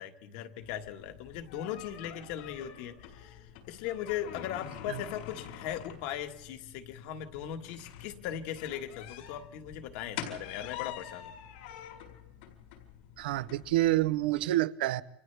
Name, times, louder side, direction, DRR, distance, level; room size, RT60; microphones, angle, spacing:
voice 1, 0.0-11.3, left 10 dB, 50° left, 1.5 m, -39 dB
sound 1, 0.6-14.4, left 10 dB, 75° left, 4.8 m, -46 dB
voice 2, 13.2-15.0, right 15 dB, 85° right, 0.7 m, -28 dB
29.5 x 26.0 x 3.4 m
supercardioid pair, 175°, 5 cm